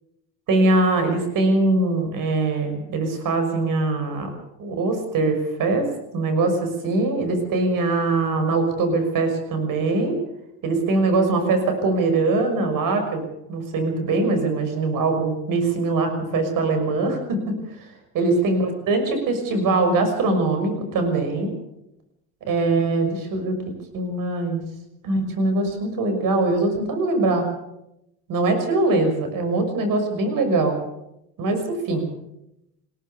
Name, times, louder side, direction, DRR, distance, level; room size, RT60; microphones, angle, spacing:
voice 1, 0.5-4.3 4.6-5.9 6.1-10.2 10.6-13.2 13.5-17.9 18.1-21.5 22.5-23.6 23.9-24.6 25.0-27.5 28.3-30.8 31.4-32.1, right 2 dB, 60° right, 6 dB, 6.2 m, -22 dB
20.5 x 18.0 x 7.1 m, 0.86 s
supercardioid pair, 90°, 37 cm